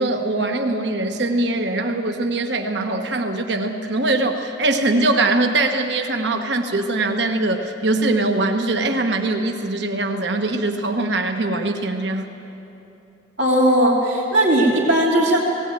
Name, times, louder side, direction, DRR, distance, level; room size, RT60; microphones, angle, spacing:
voice 1, 0.0-12.3, right 2 dB, 65° right, 4 dB, 1.2 m, -22 dB
voice 2, 13.4-15.4, right 1 dB, 80° right, -8 dB, 3.0 m, -17 dB
18.5 x 17.5 x 9.2 m, 2.9 s
head